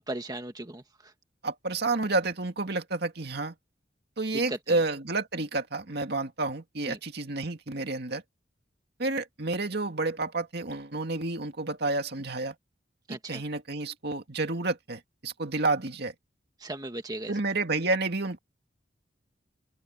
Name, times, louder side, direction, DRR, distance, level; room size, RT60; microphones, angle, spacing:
voice 1, 0.1-0.8 4.5-4.8 6.9-7.0 13.1-13.4 16.6-17.3, right 1 dB, 20° right, 1.7 m, -36 dB
voice 2, 1.4-3.5 4.2-8.2 9.0-12.5 13.1-16.1 17.3-18.4, right 3 dB, 60° right, 2.3 m, -30 dB
open air
head